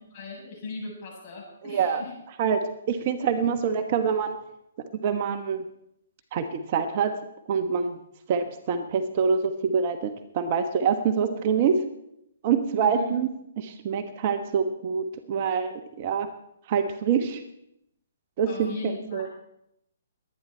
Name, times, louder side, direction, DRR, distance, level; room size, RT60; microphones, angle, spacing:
voice 1, 0.1-2.1 12.8-13.1 18.5-19.3, left 3 dB, 35° left, -3 dB, 7.8 m, -37 dB
voice 2, 1.7-2.0 2.4-4.4 5.0-5.6 6.3-7.1 7.5-8.0 8.3-11.7 12.4-13.3 13.6-16.3 16.7-17.4 18.4-19.3, right 6 dB, 40° right, 7 dB, 1.2 m, -25 dB
22.5 x 9.9 x 4.4 m, 0.78 s
hypercardioid pair, 150°, 0 cm